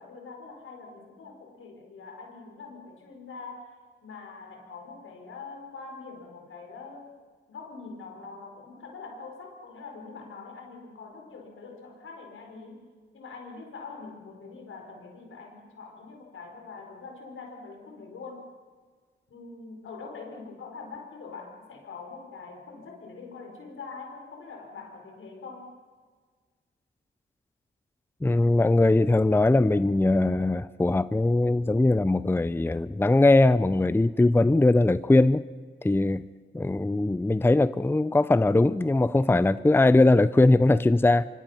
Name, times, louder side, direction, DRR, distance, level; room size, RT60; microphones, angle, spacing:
voice 1, 0.0-7.1 7.5-12.9 13.1-18.5 19.3-25.7, left 4 dB, 85° left, 2 dB, 4.8 m, -44 dB
voice 2, 28.2-35.4 35.8-36.3 36.5-41.3, left 2 dB, 10° left, 15 dB, 0.6 m, -21 dB
25.5 x 24.5 x 5.8 m, 1.5 s
cardioid pair, 65°, 21 cm